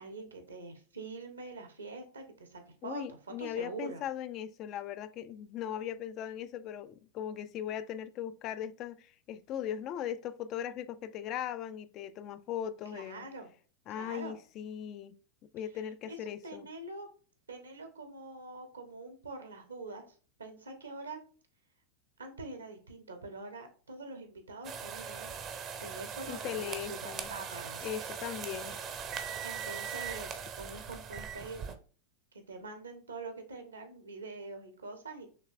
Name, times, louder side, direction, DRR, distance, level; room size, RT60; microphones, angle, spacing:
voice 1, 0.0-4.0 12.9-13.5 13.9-14.4 16.0-17.1 17.5-21.2 22.2-25.3 25.8-27.9 29.4-31.7 32.5-35.3, right 3 dB, 75° right, 1.0 m, -45 dB
voice 2, 2.8-13.3 13.9-15.2 15.5-16.7 26.3-27.3 27.8-28.8, left 10 dB, 35° left, 0.3 m, -39 dB
sound 1, 24.6-31.7, right 7 dB, 30° right, 0.6 m, -40 dB
5.9 x 3.2 x 2.5 m
figure-of-eight pair, 90°, 0 cm